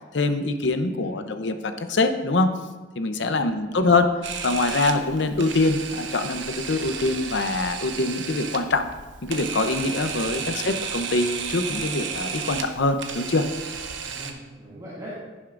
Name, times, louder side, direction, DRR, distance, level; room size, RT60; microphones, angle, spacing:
voice 1, 0.1-2.5 3.0-4.1 4.4-8.8 9.2-13.4, left 2 dB, 70° left, 8 dB, 0.7 m, -24 dB
voice 2, 3.1-3.8 10.3-10.7 14.0-15.2, equal, 20° right, -11 dB, 2.2 m, -41 dB
Camera, 4.2-14.3, right 6 dB, 80° right, 0.9 m, -33 dB
11.0 x 10.5 x 2.6 m, 1.2 s
head